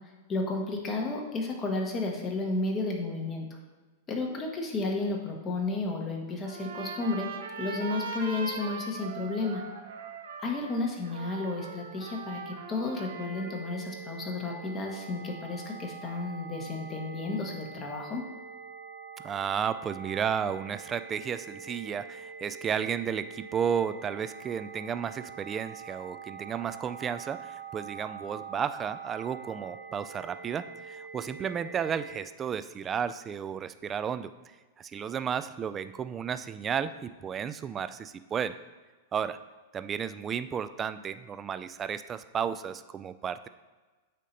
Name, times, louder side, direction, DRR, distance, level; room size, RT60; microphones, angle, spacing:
voice 1, 0.3-3.5 4.1-7.3 7.6-9.6 10.4-18.3, left 3 dB, 25° left, 1 dB, 1.3 m, -32 dB
Trumpet, 6.4-13.8, right 5 dB, 85° right, 1.0 m, -40 dB
sound 1, 13.1-32.2, right 6 dB, 55° right, 0.8 m, -44 dB
voice 2, 19.2-34.3 34.8-38.6 39.1-39.4 39.7-43.5, right 7 dB, 25° right, 12 dB, 0.3 m, -33 dB
8.3 x 2.9 x 5.3 m, 1.3 s
hypercardioid pair, 130°, 0 cm